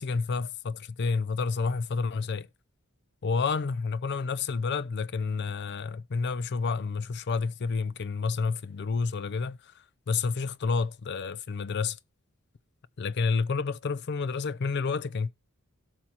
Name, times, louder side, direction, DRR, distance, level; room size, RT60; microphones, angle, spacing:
voice 1, 0.0-2.5 3.2-9.7 10.1-12.0 13.0-15.3, left 4 dB, 50° left, 0.5 m, -29 dB
17.0 x 5.8 x 2.9 m
head